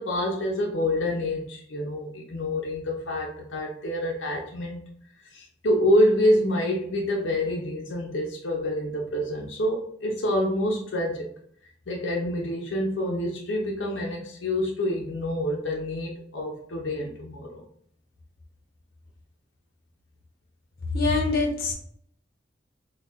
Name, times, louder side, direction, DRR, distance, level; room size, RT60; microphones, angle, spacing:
voice 1, 0.0-4.8 5.3-11.3 11.9-17.6, left 1 dB, 85° left, -1 dB, 0.6 m, -27 dB
voice 2, 20.9-21.7, left 3 dB, 55° left, 0 dB, 0.8 m, -24 dB
4.2 x 2.3 x 2.4 m, 0.63 s
head